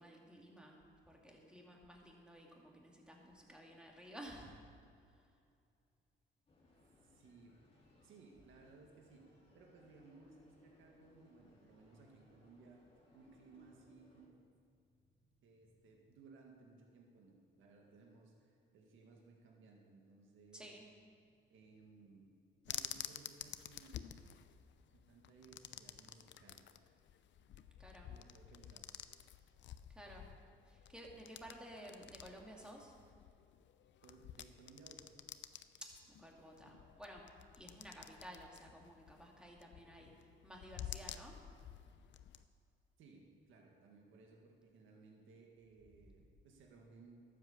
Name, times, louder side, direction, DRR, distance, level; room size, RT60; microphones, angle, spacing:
voice 1, 0.0-4.6 5.1-5.2 20.5-20.9 27.8-28.1 29.9-30.3 30.7-32.9 35.8-37.3 37.6-41.4, equal, 5° right, -1 dB, 2.5 m, -54 dB
sound 1, 6.5-14.3, left 2 dB, 30° left, 3.6 m, -67 dB
voice 2, 7.0-7.6 8.0-9.3 9.5-12.8 13.1-14.3 15.4-20.7 21.5-22.3 22.7-24.2 24.9-26.6 28.0-28.9 34.0-35.1 43.0-47.2, right 4 dB, 80° right, 0 dB, 1.9 m, -61 dB
sound 2, 22.6-42.4, left 10 dB, 65° left, 0.6 m, -51 dB
12.0 x 8.1 x 7.2 m, 2.4 s
cardioid pair, 90°, 20 cm